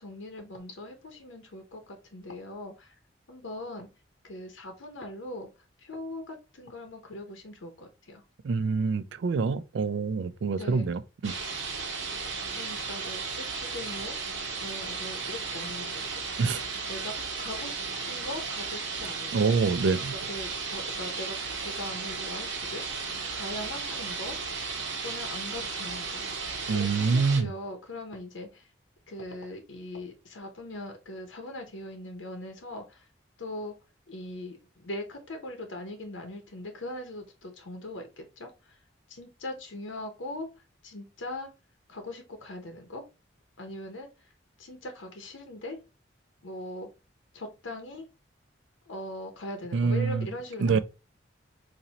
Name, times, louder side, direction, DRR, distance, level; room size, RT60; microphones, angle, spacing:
voice 1, 0.0-2.9 3.3-3.9 4.2-5.5 5.8-8.2 10.5-10.9 12.5-16.4 16.9-19.5 20.1-24.4 25.0-26.2 26.7-28.7 29.1-33.1 33.4-33.7 34.1-38.8 39.1-41.5 41.9-43.0 43.6-44.3 44.6-45.8 46.4-46.9 47.3-48.1 48.9-50.8, left 1 dB, 85° left, 0.8 m, -40 dB
voice 2, 8.4-11.3 16.4-16.6 19.3-20.1 26.7-27.5 49.7-50.3 50.6-50.8, right 4 dB, 70° right, 0.4 m, -26 dB
sound 1, 11.2-27.4, right 4 dB, 85° right, 1.1 m, -35 dB
4.2 x 2.6 x 2.8 m
head